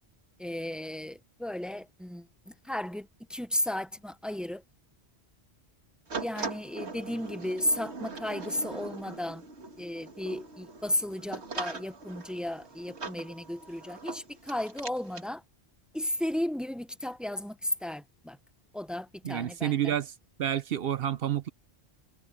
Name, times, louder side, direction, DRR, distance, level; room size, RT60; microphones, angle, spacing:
voice 1, 0.4-4.6 6.2-9.4 9.8-15.4 15.9-18.4 18.7-19.9, left 1 dB, ahead, 0.4 m, -34 dB
sound 1, 6.1-15.3, right 4 dB, 90° right, 2.2 m, -41 dB
voice 2, 19.2-20.1 20.4-21.5, right 10 dB, 65° right, 0.8 m, -29 dB
omnidirectional pair, 1.1 m